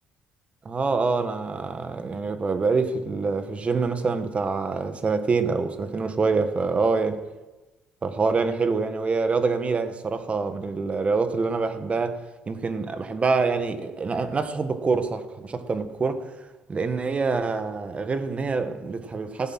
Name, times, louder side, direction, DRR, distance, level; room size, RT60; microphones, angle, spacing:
voice 1, 0.6-7.2 8.0-16.3 16.7-19.5, right 4 dB, 35° right, 1.4 m, -26 dB
16.0 x 7.9 x 6.1 m
supercardioid pair, 75°, 4 cm